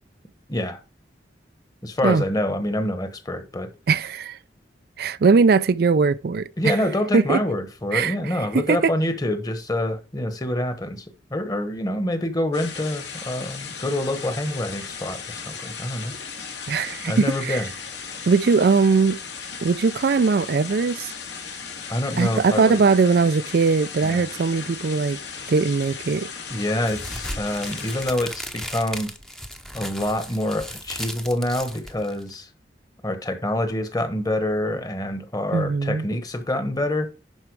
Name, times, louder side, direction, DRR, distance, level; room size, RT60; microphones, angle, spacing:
voice 1, 0.5-0.8 1.8-3.7 6.6-11.0 11.3-16.2 17.0-17.7 21.9-22.8 24.0-24.2 26.5-29.1 29.7-32.5 33.0-37.1, left 1 dB, 20° left, 1.2 m, -26 dB
voice 2, 3.9-4.4 5.0-6.7 7.1-7.4 7.9-8.9 16.7-17.6 18.3-19.2 19.6-21.1 22.2-25.2 25.5-26.3 35.5-36.0, right 4 dB, 60° right, 0.4 m, -20 dB
sound 1, 12.5-28.1, left 6 dB, 80° left, 2.2 m, -36 dB
sound 2, 26.8-32.3, equal, 5° left, 0.8 m, -36 dB
11.0 x 4.6 x 4.7 m
head